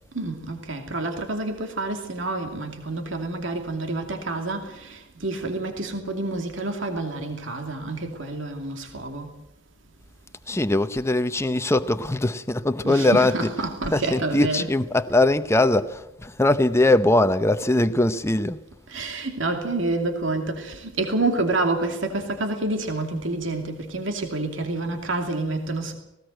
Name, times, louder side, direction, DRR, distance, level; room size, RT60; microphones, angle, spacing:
voice 1, 0.1-9.3 12.8-14.7 18.9-26.0, right 2 dB, 70° right, 2.6 m, -28 dB
voice 2, 10.5-18.6, left 2 dB, 15° left, 0.8 m, -21 dB
18.5 x 18.0 x 7.8 m
head